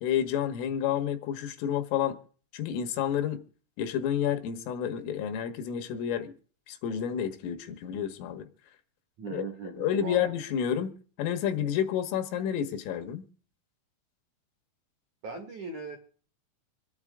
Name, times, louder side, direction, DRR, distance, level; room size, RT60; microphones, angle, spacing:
voice 1, 0.0-2.2 2.5-3.4 3.8-6.3 6.7-8.5 9.3-9.4 9.8-13.3, left 9 dB, 80° left, 3.8 m, -30 dB
voice 2, 9.2-10.2 15.2-16.0, right 5 dB, 60° right, 2.1 m, -38 dB
26.5 x 8.9 x 3.6 m
omnidirectional pair, 5.9 m